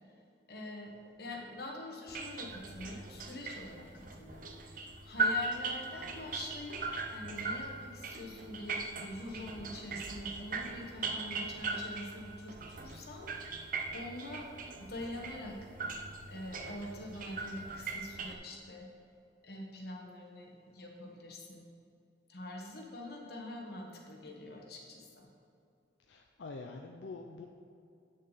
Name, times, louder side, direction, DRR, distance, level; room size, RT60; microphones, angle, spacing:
voice 1, 0.5-0.9 1.2-6.8 7.1-13.6 13.9-14.5 14.8-15.7 16.3-18.9 19.4-21.7 22.3-25.3, left 1 dB, 60° left, 0 dB, 1.3 m, -45 dB
sound 1, 2.1-18.4, right 3 dB, 50° right, 0.6 m, -39 dB
voice 2, 26.1-27.5, left 3 dB, 80° left, 2 dB, 0.5 m, -45 dB
8.8 x 6.5 x 4.1 m, 2.5 s
head